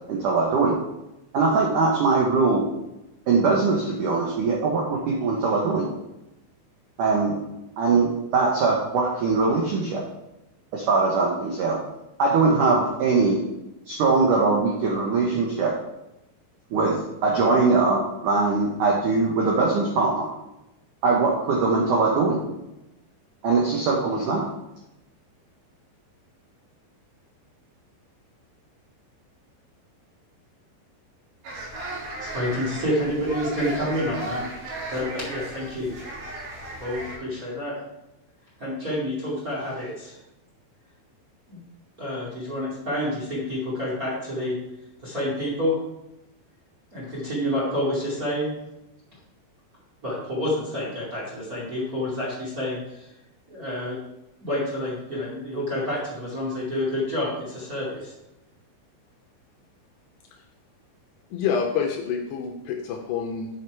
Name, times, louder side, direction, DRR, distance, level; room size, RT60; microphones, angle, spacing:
voice 1, 0.1-0.8 1.3-2.7 3.3-5.8 7.0-7.4 7.8-10.0 10.7-11.8 12.2-13.4 13.9-15.7 16.7-17.0 17.2-20.3 21.0-22.4 23.4-24.4, right 4 dB, 75° right, -2 dB, 1.8 m, -21 dB
sound 1, 31.4-37.2, right 1 dB, 60° right, 3.8 m, -35 dB
voice 2, 32.2-35.9 36.8-37.7 38.6-40.2 41.5-41.6 42.0-44.5 45.0-45.7 46.9-48.5 50.0-53.1 53.5-54.0 54.4-58.1, left 1 dB, 30° right, -6 dB, 1.7 m, -28 dB
voice 3, 61.3-63.5, left 6 dB, 80° left, 3 dB, 2.6 m, -27 dB
8.7 x 6.5 x 4.6 m, 0.92 s
omnidirectional pair, 5.4 m